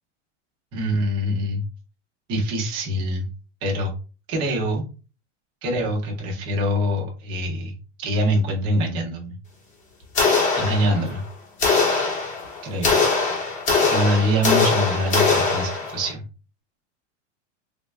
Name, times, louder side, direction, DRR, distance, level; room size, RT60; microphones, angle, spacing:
voice 1, 0.7-1.6 2.3-3.3 3.6-3.9 4.3-4.8 5.6-7.7 8.0-9.4 10.6-11.2 12.6-13.0 13.9-16.2, equal, 15° right, -2 dB, 0.4 m, -24 dB
sound 1, 10.1-11.2 11.6-16.1, left 4 dB, 20° left, 0.7 m, -21 dB
3.4 x 2.2 x 3.1 m, 0.34 s
supercardioid pair, 175°, 37 cm